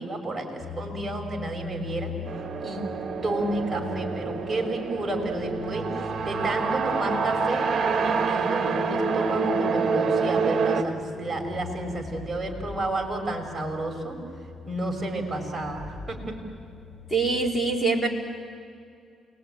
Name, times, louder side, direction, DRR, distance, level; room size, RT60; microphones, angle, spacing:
voice 1, 0.0-2.1 2.6-2.8 3.2-14.2 14.7-16.3, right 2 dB, 20° right, 1 dB, 6.0 m, -31 dB
sound 1, 0.6-17.6, left 2 dB, 25° left, 5.1 m, -41 dB
sound 2, 2.3-10.8, right 5 dB, 55° right, 1.5 m, -27 dB
voice 2, 17.1-18.1, right 3 dB, 5° left, -1 dB, 4.0 m, -24 dB
28.5 x 20.5 x 9.2 m, 2.4 s
cardioid pair, 90°, 0 cm